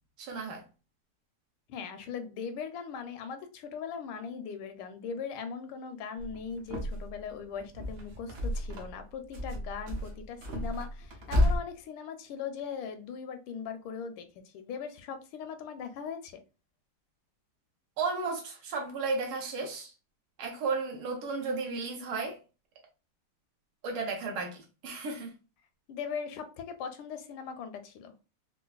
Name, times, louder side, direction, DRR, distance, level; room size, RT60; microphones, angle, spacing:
voice 1, 0.2-0.6 18.0-19.9 20.4-22.4 23.8-25.3, right 4 dB, 75° right, 1.7 m, -34 dB
voice 2, 1.7-16.4 25.9-28.1, left 6 dB, 80° left, 1.4 m, -39 dB
sound 1, 6.2-7.2 7.6-9.0 9.3-11.6, left 1 dB, 60° right, 0.9 m, -31 dB
4.5 x 2.2 x 2.3 m
omnidirectional pair, 2.4 m